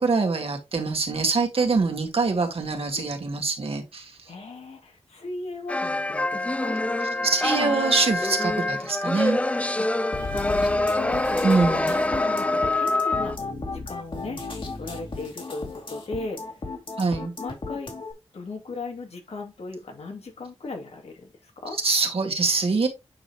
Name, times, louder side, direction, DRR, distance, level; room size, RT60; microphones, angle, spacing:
voice 1, 0.0-4.3 7.2-9.4 11.4-11.9 17.0-17.3 21.8-22.9, right 4 dB, 60° right, 2.0 m, -24 dB
voice 2, 4.3-6.8 9.8-9.9 10.3-11.5 11.9-16.4 17.4-17.9 18.3-21.8, left 3 dB, 75° left, 2.3 m, -37 dB
sound 1, 5.7-13.4, left 2 dB, 10° left, 0.3 m, -25 dB
sound 2, 10.1-18.1, left 3 dB, 50° left, 2.5 m, -35 dB
8.6 x 5.1 x 2.9 m
wide cardioid pair, 95°, 11 cm